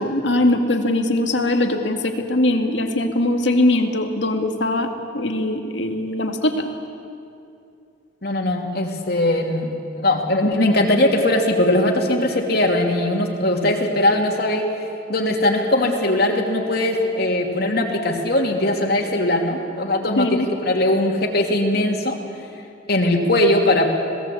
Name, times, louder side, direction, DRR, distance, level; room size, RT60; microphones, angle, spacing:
voice 1, 0.0-6.7 20.2-20.5, left 1 dB, 70° left, 5 dB, 2.1 m, -21 dB
voice 2, 8.2-14.7 15.1-22.2 22.9-23.9, left 1 dB, 55° left, 2 dB, 2.8 m, -20 dB
26.5 x 18.5 x 8.6 m, 2.5 s
head